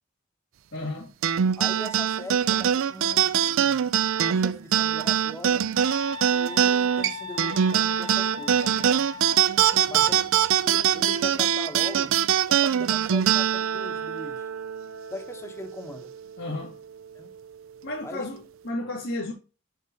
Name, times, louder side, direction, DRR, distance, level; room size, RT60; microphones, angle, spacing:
voice 1, 0.7-1.1 9.7-10.2 16.4-16.8 17.8-19.3, left 2 dB, 65° left, 1.7 m, -33 dB
sound 1, 1.2-16.0, right 9 dB, 65° right, 0.4 m, -23 dB
voice 2, 1.6-3.8 4.2-5.7 6.2-9.1 9.9-12.2 12.5-14.5 15.1-16.1 17.1-17.3 18.0-18.3, left 1 dB, 15° left, 1.0 m, -41 dB
sound 2, 5.8-9.4, left 3 dB, 40° right, 1.2 m, -37 dB
6.6 x 5.4 x 2.8 m
head